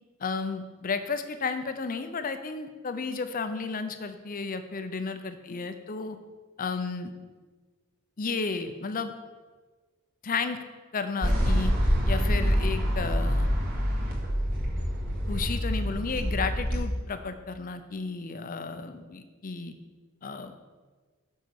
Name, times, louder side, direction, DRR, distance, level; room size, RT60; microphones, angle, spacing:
voice 1, 0.2-6.2 6.6-7.1 8.2-9.1 10.2-10.6 10.9-11.7 12.1-13.5 15.3-19.7 20.2-20.5, left 4 dB, 40° left, 9 dB, 0.6 m, -33 dB
sound 1, 11.2-16.8, equal, 45° right, 2.1 m, -26 dB
6.6 x 5.6 x 6.4 m, 1.4 s
head